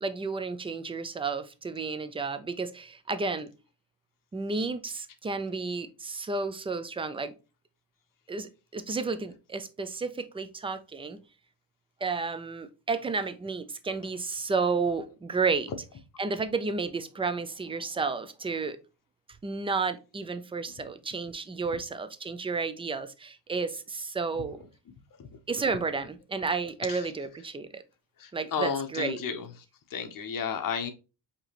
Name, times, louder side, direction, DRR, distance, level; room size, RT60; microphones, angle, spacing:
voice 1, 0.0-3.5 4.3-7.3 8.3-11.2 12.0-15.7 16.2-18.8 19.4-24.6 25.5-27.8 28.3-29.2, right 4 dB, 15° right, 0.3 m, -32 dB
voice 2, 28.2-29.5 29.9-30.9, left 6 dB, 45° left, 0.9 m, -32 dB
4.8 x 2.9 x 2.9 m
cardioid pair, 105°, 45 cm